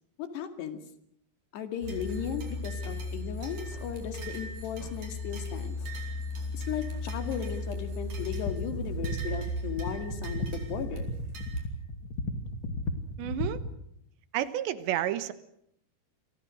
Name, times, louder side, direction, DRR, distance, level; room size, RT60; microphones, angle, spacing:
voice 1, 0.2-0.8 1.5-5.8 6.5-11.0, left 8 dB, 75° left, 8 dB, 4.3 m, -36 dB
sound 1, 1.8-11.7, left 1 dB, 50° right, 5.7 m, -36 dB
sound 2, 8.1-13.8, left 2 dB, 40° left, 2.2 m, -35 dB
voice 2, 13.2-13.6 14.3-15.3, right 12 dB, 90° right, 13 dB, 3.6 m, -30 dB
28.5 x 24.0 x 6.3 m, 0.71 s
omnidirectional pair, 4.9 m